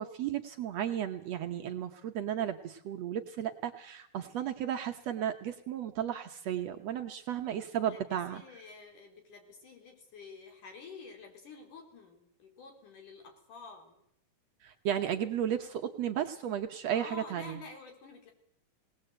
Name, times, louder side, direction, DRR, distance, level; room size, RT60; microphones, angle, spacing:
voice 1, 0.0-8.4 14.6-17.6, right 10 dB, 65° right, 5 dB, 1.8 m, -34 dB
voice 2, 7.9-13.9 16.9-18.3, left 4 dB, 75° left, 3 dB, 5.1 m, -49 dB
20.5 x 18.5 x 7.9 m, 0.70 s
omnidirectional pair, 3.7 m